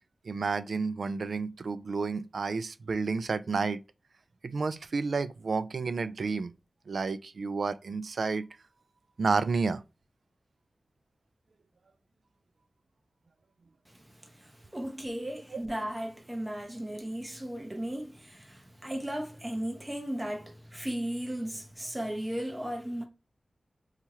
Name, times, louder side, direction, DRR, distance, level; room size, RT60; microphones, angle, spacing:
voice 1, 0.2-3.8 4.4-6.6 6.9-8.5 9.2-9.8 15.5-15.6, right 4 dB, 75° right, 0.3 m, -30 dB
voice 2, 13.9-23.0, right 1 dB, 20° right, 0.9 m, -36 dB
2.8 x 2.4 x 3.0 m
wide cardioid pair, 70°, 0 cm